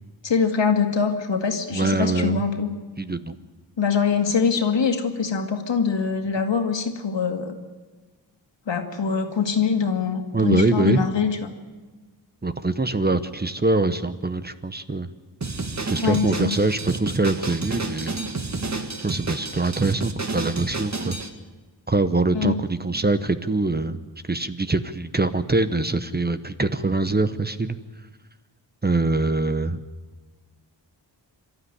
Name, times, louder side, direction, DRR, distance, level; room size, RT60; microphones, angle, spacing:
voice 1, 0.2-2.7 3.8-7.5 8.7-11.5 16.0-16.6 22.3-22.5, left 6 dB, 75° left, 5 dB, 2.4 m, -23 dB
voice 2, 1.7-2.4 3.0-3.4 10.3-11.0 12.4-15.1 15.9-18.2 19.0-21.2 21.9-24.0 24.2-27.8 28.8-29.8, right 3 dB, 20° right, 11 dB, 0.9 m, -23 dB
Drum kit, 15.4-21.3, right 3 dB, 40° right, 2.0 m, -30 dB
27.0 x 13.0 x 9.9 m, 1.3 s
wide cardioid pair, 110°, 44 cm